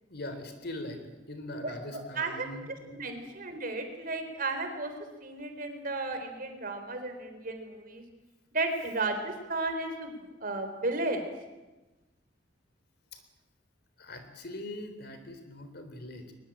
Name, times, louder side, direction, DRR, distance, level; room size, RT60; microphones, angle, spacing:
voice 1, 0.1-2.9 13.1-13.2 14.0-16.3, left 1 dB, 60° left, 8 dB, 3.9 m, -41 dB
voice 2, 1.6-2.5 2.9-4.9 5.2-8.0 8.5-10.1 10.4-11.2, right 2 dB, 50° right, 7 dB, 4.0 m, -34 dB
22.5 x 21.0 x 8.9 m, 1.1 s
head